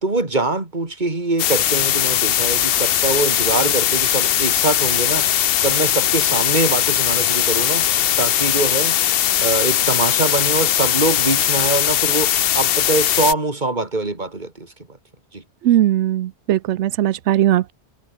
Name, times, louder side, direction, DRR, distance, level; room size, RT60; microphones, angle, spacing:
voice 1, 0.0-14.7 15.3-15.4, right 2 dB, 40° right, 3.4 m, -23 dB
sound 1, 1.4-13.3, left 11 dB, 65° left, 0.8 m, -19 dB
sound 2, 4.8-11.5, left 2 dB, 40° left, 3.7 m, -41 dB
voice 2, 15.6-17.7, right 12 dB, 90° right, 0.9 m, -18 dB
omnidirectional pair, 1.1 m